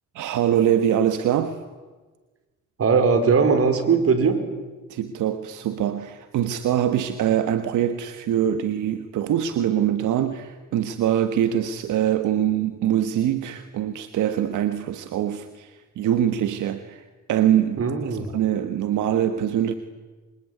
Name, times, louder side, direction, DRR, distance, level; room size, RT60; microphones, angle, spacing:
voice 1, 0.1-1.6 4.9-17.0 17.3-19.7, right 10 dB, 80° right, 10 dB, 1.6 m, -23 dB
voice 2, 2.8-4.4 17.8-18.3, right 5 dB, 50° right, 8 dB, 4.8 m, -19 dB
26.5 x 23.5 x 9.6 m, 1.3 s
cardioid pair, 90°, 30 cm